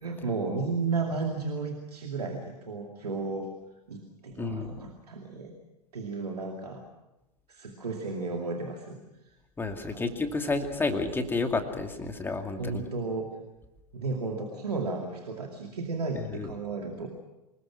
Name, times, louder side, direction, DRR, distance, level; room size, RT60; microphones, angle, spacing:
voice 1, 0.0-3.5 3.9-5.5 5.9-6.8 7.5-9.0 9.3-9.4 9.7-10.1 12.6-13.4 13.9-17.1, right 4 dB, 75° right, 2 dB, 2.5 m, -33 dB
voice 2, 4.4-4.8 9.6-12.9 16.2-16.5, left 3 dB, 10° left, 5 dB, 2.4 m, -31 dB
25.0 x 21.0 x 6.2 m, 0.96 s
figure-of-eight pair, 95°, 20 cm